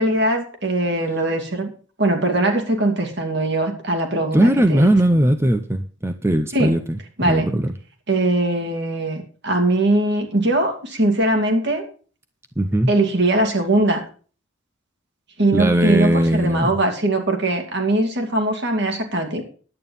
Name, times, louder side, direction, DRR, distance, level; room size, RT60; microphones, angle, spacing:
voice 1, 0.0-1.7 2.0-4.9 6.5-6.7 7.2-7.5 8.1-11.8 12.9-14.0 15.4-19.4, right 2 dB, 55° right, 4 dB, 2.6 m, -21 dB
voice 2, 4.3-7.0 7.2-7.7 12.6-12.9 15.5-16.7, right 1 dB, 10° right, 8 dB, 0.6 m, -18 dB
11.0 x 9.1 x 5.5 m, 0.40 s
head